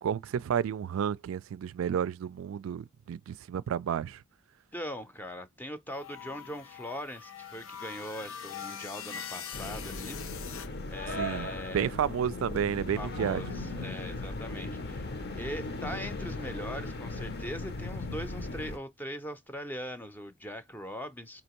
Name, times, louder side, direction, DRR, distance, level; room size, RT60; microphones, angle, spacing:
voice 1, 0.0-4.2 11.1-11.5 11.7-13.4, right 8 dB, 90° right, 0.3 m, -31 dB
voice 2, 4.7-10.2 10.5-11.9 13.0-21.4, equal, 10° left, 0.5 m, -41 dB
sound 1, 5.9-10.7, left 8 dB, 90° left, 0.5 m, -43 dB
sound 2, 9.5-18.8, left 2 dB, 55° left, 0.7 m, -37 dB
4.3 x 2.8 x 2.9 m
head